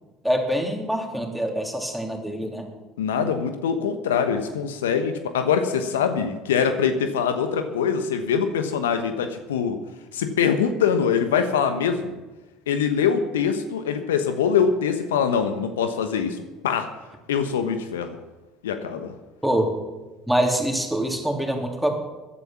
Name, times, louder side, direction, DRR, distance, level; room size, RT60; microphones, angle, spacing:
voice 1, 0.2-2.7 19.4-19.7 20.3-22.0, right 1 dB, ahead, 1 dB, 3.4 m, -24 dB
voice 2, 3.0-9.8 10.1-12.2 12.7-16.9 17.3-18.2 18.6-19.2, left 7 dB, 80° left, 9 dB, 1.0 m, -23 dB
15.0 x 11.0 x 5.9 m, 1.1 s
hypercardioid pair, 65°, 0 cm